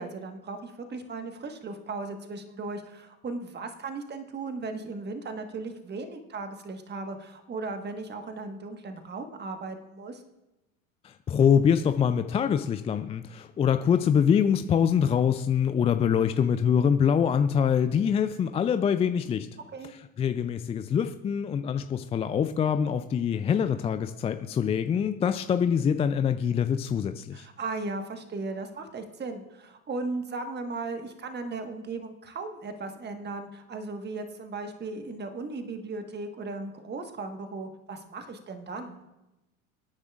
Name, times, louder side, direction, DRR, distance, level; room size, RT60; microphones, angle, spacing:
voice 1, 0.0-10.2 19.7-19.9 27.3-39.0, right 3 dB, 25° right, 6 dB, 1.5 m, -37 dB
voice 2, 11.0-19.5 20.2-27.5, left 7 dB, 15° left, 9 dB, 0.3 m, -24 dB
25.0 x 9.7 x 2.5 m, 0.98 s
hypercardioid pair, 75°, 40 cm